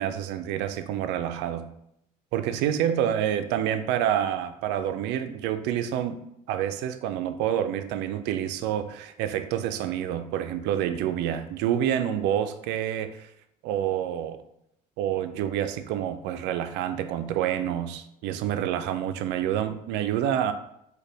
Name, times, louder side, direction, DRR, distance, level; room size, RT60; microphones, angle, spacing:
voice 1, 0.0-1.7 2.3-6.2 6.5-13.3 13.6-14.4 15.0-20.5, right 10 dB, 70° right, 10 dB, 0.4 m, -28 dB
3.9 x 2.2 x 3.3 m, 0.77 s
hypercardioid pair, 70°, 19 cm